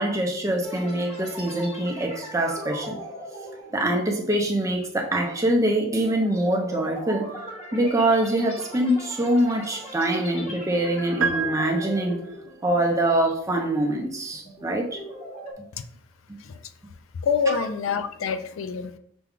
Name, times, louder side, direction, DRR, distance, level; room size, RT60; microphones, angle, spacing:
voice 1, 0.0-3.0 3.7-7.4 7.7-12.2 12.6-15.0 17.5-17.6, right 1 dB, 15° right, 0.7 m, -24 dB
sound 1, 0.6-13.1 13.5-13.7 14.2-15.5, right 1 dB, 35° left, 0.9 m, -39 dB
sound 2, 11.2-12.5, right 6 dB, 70° right, 0.4 m, -29 dB
voice 2, 17.2-19.0, left 6 dB, 75° left, 0.4 m, -26 dB
6.0 x 2.3 x 3.7 m
head